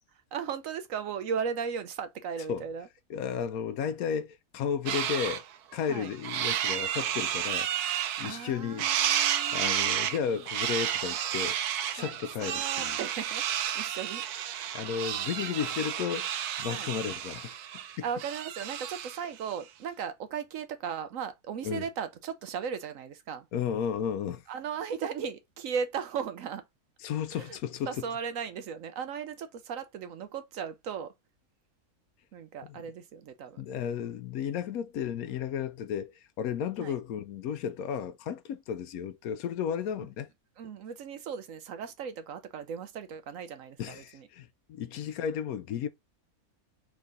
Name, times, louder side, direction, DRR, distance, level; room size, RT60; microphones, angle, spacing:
voice 1, 0.3-2.9 5.9-6.1 8.2-10.4 12.0-12.2 12.4-13.4 13.7-14.2 16.7-16.9 18.0-23.5 24.5-26.6 27.3-27.6 27.9-31.1 32.3-33.6 36.8-37.0 40.6-44.3, right 7 dB, 65° right, 1.0 m, -37 dB
voice 2, 3.1-5.4 5.7-7.7 8.2-8.9 9.5-11.6 11.9-13.0 14.7-16.3 16.6-17.8 21.6-21.9 23.5-24.4 27.0-28.0 32.6-32.8 33.6-40.3 43.8-45.9, left 8 dB, 75° left, 1.0 m, -33 dB
sound 1, 4.9-5.4 5.8-8.5 8.8-19.3, right 10 dB, 90° right, 1.2 m, -31 dB
4.0 x 3.7 x 3.4 m
omnidirectional pair, 1.6 m